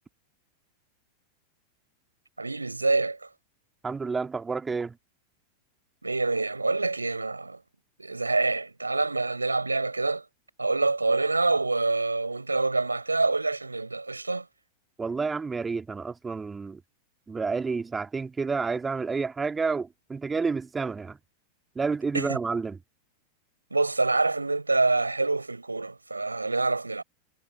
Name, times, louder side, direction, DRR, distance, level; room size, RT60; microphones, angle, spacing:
voice 1, 2.4-3.2 6.0-7.6 8.0-10.2 10.6-14.4 22.1-22.3 23.7-27.0, right 3 dB, 80° right, 5.0 m, -26 dB
voice 2, 3.8-5.0 15.0-16.8 17.3-21.2 21.8-22.8, right 4 dB, 15° right, 2.4 m, -30 dB
figure-of-eight pair, 90°, 0 cm